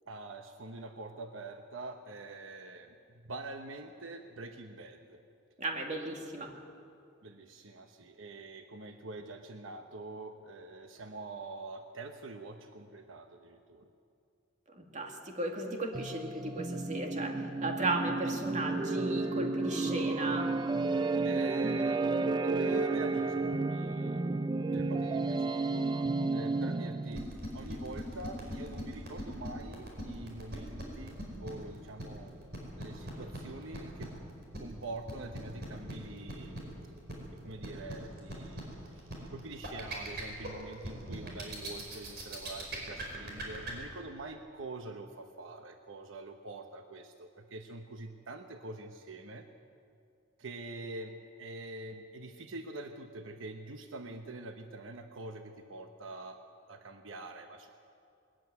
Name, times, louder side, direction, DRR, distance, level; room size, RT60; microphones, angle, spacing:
voice 1, 0.1-5.2 7.2-13.9 21.2-22.1 22.4-24.2 24.7-25.9 26.3-27.3 27.5-32.3 32.8-34.1 34.6-36.6 37.4-38.7 38.9-49.5 50.4-56.4 56.7-57.7, right 2 dB, 80° right, 6 dB, 1.0 m, -45 dB
voice 2, 5.6-6.5 14.8-20.5, right 2 dB, 40° right, 2 dB, 2.3 m, -35 dB
sound 1, 15.9-27.3, right 3 dB, 20° right, 0.4 m, -32 dB
sound 2, 27.1-43.7, right 1 dB, 55° right, 5.0 m, -40 dB
20.5 x 14.0 x 9.5 m, 2.4 s
head